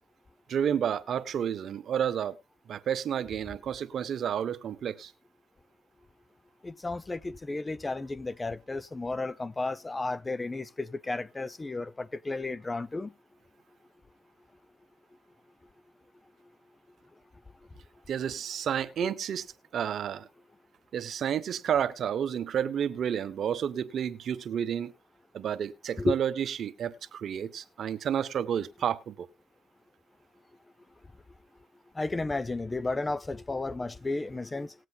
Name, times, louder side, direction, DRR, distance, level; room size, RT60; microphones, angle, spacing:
voice 1, 0.5-2.4 2.7-5.1 18.1-19.4 19.7-20.3 20.9-24.9 25.3-29.3, right 9 dB, 65° right, 0.9 m, -30 dB
voice 2, 6.6-13.1 26.0-26.2 31.9-34.7, left 2 dB, 20° left, 0.6 m, -33 dB
19.0 x 7.8 x 2.3 m
cardioid pair, 90°, 0 cm